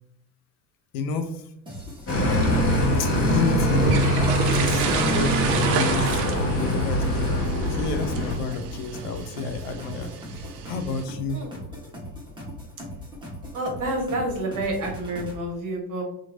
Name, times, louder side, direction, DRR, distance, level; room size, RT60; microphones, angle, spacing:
voice 1, 0.9-1.4 3.0-3.9 4.5-6.2 6.6-10.1 10.4-11.4, left 4 dB, 60° left, 7 dB, 0.6 m, -30 dB
sound 1, 1.7-15.4, equal, 10° right, 0.9 m, -39 dB
sound 2, 2.1-8.3, equal, 30° left, 1.0 m, -23 dB
sound 3, 2.4-11.1, right 7 dB, 65° right, 0.6 m, -32 dB
voice 2, 5.3-5.9 11.3-11.6 13.5-16.0, right 1 dB, 40° right, 1 dB, 1.1 m, -29 dB
2.8 x 2.5 x 2.5 m, 0.73 s
hypercardioid pair, 75°, 50 cm